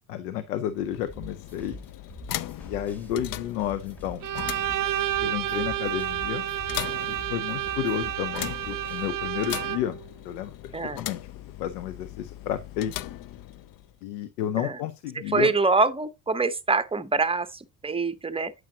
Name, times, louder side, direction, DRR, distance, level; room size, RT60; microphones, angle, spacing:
voice 1, 0.1-1.8 2.6-4.2 5.2-6.4 7.1-10.0 10.2-11.2 11.6-12.9 14.0-15.5, left 10 dB, 85° left, 0.7 m, -31 dB
sound 1, 0.7-14.0, left 13 dB, 50° left, 0.6 m, -39 dB
sound 2, 1.1-9.1, right 2 dB, 5° left, 1.6 m, -45 dB
Bowed string instrument, 4.2-10.0, right 13 dB, 50° right, 0.6 m, -30 dB
voice 2, 10.7-11.0 14.6-14.8 15.3-18.5, right 4 dB, 10° right, 0.8 m, -25 dB
8.7 x 6.3 x 2.8 m
hypercardioid pair, 70°, 45 cm